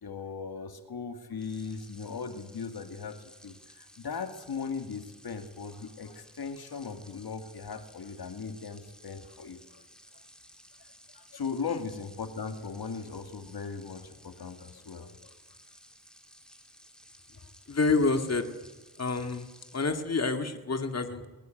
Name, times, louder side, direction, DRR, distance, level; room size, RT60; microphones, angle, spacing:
voice 1, 0.0-3.2 3.4-9.8 11.1-15.3, left 5 dB, 85° left, 7 dB, 2.2 m, -38 dB
sound 1, 1.3-20.0, equal, ahead, 3.4 m, -56 dB
voice 2, 17.7-18.5 19.0-19.5 19.7-21.3, left 3 dB, 45° left, 7 dB, 2.2 m, -28 dB
22.0 x 21.0 x 9.2 m, 1.2 s
wide cardioid pair, 85°, 36 cm